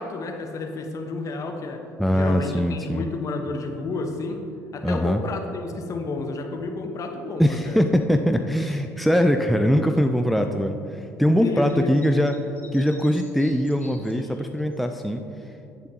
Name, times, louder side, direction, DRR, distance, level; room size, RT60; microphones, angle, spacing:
voice 1, 0.0-1.8 2.1-4.4 4.7-7.8 11.4-11.9, left 3 dB, 45° left, 4 dB, 1.2 m, -31 dB
voice 2, 2.0-3.0 4.8-5.2 7.4-12.4 12.7-15.2, equal, ahead, 5 dB, 0.5 m, -22 dB
sound 1, 11.6-14.8, left 3 dB, 25° left, 1.7 m, -49 dB
14.5 x 7.0 x 2.9 m, 2.6 s
hypercardioid pair, 60°, 8 cm